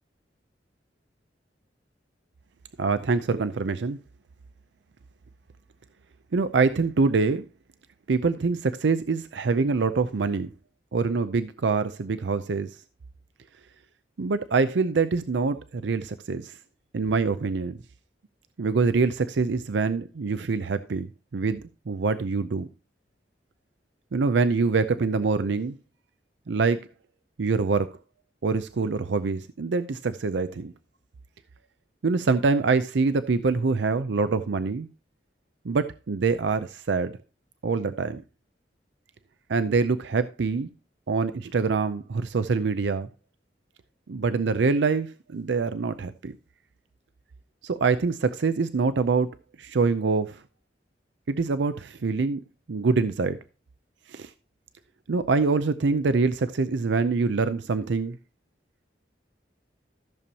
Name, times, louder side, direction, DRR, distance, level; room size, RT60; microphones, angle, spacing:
voice 1, 2.8-4.0 6.3-7.4 8.1-10.5 10.9-12.7 14.2-16.5 16.9-17.8 18.6-21.1 21.3-22.7 24.1-25.8 26.5-26.8 27.4-27.9 28.4-30.7 32.0-34.9 35.6-37.2 37.6-38.2 39.5-40.7 41.1-43.1 44.1-46.4 47.6-49.3 49.6-50.4 51.3-52.4 52.7-53.4 54.1-54.3 55.1-58.2, right 4 dB, 80° right, 0.5 m, -25 dB
14.0 x 6.9 x 2.8 m
head